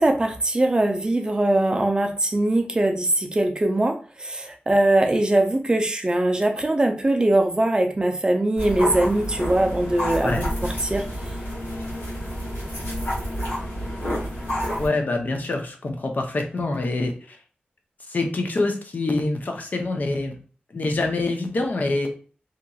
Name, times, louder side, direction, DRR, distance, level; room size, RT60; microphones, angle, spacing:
voice 1, 0.0-11.1, right 1 dB, 25° right, 5 dB, 0.4 m, -21 dB
sound 1, 8.6-14.9, equal, 90° left, 1.2 m, -29 dB
voice 2, 14.8-17.4 18.1-20.4 20.7-22.1, left 2 dB, 55° left, 3 dB, 0.5 m, -25 dB
2.8 x 2.5 x 2.3 m, 0.40 s
wide cardioid pair, 120°, 4 cm